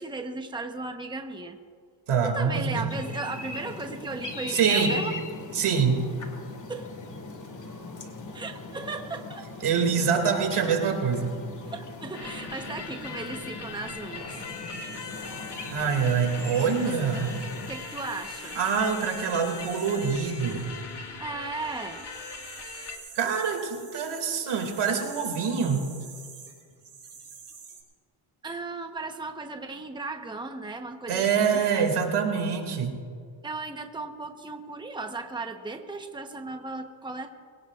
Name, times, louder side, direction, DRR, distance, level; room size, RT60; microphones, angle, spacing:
voice 1, 0.0-1.6 2.2-5.2 6.7-6.9 8.3-9.5 11.6-14.3 16.9-17.0 17.7-18.6 21.2-22.0 28.4-31.6 33.4-37.3, right 3 dB, 10° right, 5 dB, 1.0 m, -36 dB
voice 2, 2.1-2.9 4.5-4.9 5.5-6.0 9.6-11.3 15.7-17.3 18.6-20.7 23.1-25.9 31.1-33.0, right 6 dB, 85° right, 4 dB, 2.5 m, -25 dB
sound 1, 2.9-17.7, left 2 dB, 35° left, 2.0 m, -39 dB
sound 2, 12.1-23.0, left 5 dB, 55° left, 1.8 m, -41 dB
sound 3, 14.3-27.8, right 5 dB, 55° right, 3.6 m, -48 dB
23.0 x 17.5 x 2.4 m, 2.1 s
cardioid pair, 105°, 49 cm